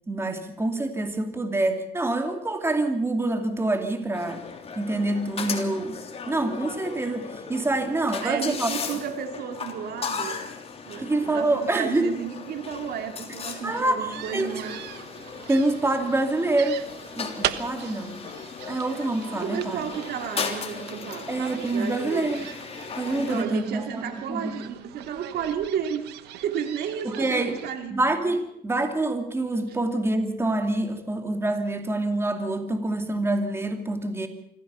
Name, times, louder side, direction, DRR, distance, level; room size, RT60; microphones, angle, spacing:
voice 1, 0.1-4.4 4.8-6.0 6.3-8.7 11.0-12.1 13.6-14.6 15.5-16.8 17.1-18.2 18.7-19.8 21.3-22.5 23.0-24.0 24.3-24.7 27.0-27.6 27.9-34.3, right 2 dB, 15° right, 5 dB, 2.6 m, -26 dB
sound 1, 4.1-23.4, left 5 dB, 35° left, 3.3 m, -37 dB
voice 2, 8.2-10.4 10.9-14.8 19.4-22.4 23.1-28.0 29.7-29.8, right 8 dB, 70° right, 6 dB, 2.7 m, -32 dB
sound 2, 14.1-27.7, right 13 dB, 85° right, 1.3 m, -39 dB
25.5 x 15.5 x 7.0 m, 0.77 s
cardioid pair, 110°, 17 cm